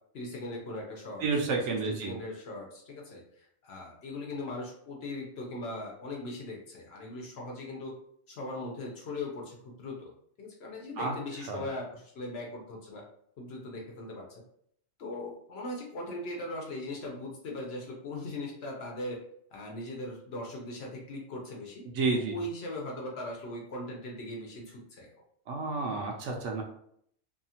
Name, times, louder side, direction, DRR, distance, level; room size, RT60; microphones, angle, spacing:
voice 1, 0.1-1.3 1.6-7.9 8.3-10.1 10.4-13.0 13.4-14.3 15.0-19.2 19.5-21.8 22.1-25.1, left 2 dB, 60° left, -1 dB, 0.7 m, -39 dB
voice 2, 1.2-2.1 11.0-11.1 11.5-11.6 21.9-22.4 25.5-26.6, right 4 dB, 70° right, 2 dB, 0.8 m, -30 dB
2.7 x 2.3 x 2.7 m, 0.67 s
omnidirectional pair, 1.4 m